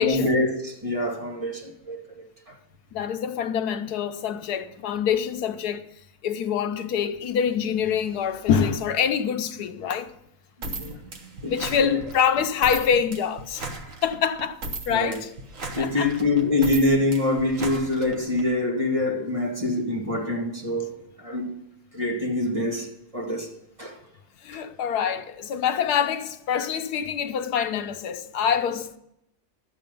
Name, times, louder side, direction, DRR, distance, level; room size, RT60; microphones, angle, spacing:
voice 1, 0.0-2.5 10.6-11.0 11.4-12.0 14.9-15.2 15.7-21.6 21.9-23.5 23.8-24.0 24.5-24.6, left 2 dB, 20° right, 2.2 m, -25 dB
voice 2, 2.9-5.9 6.2-10.1 11.4-13.6 14.0-14.6 14.9-15.3 15.8-16.1 24.4-29.0, left 7 dB, 85° left, 1.3 m, -25 dB
sound 1, 10.6-18.5, right 2 dB, 55° right, 1.6 m, -36 dB
12.5 x 8.7 x 5.2 m
omnidirectional pair, 1.7 m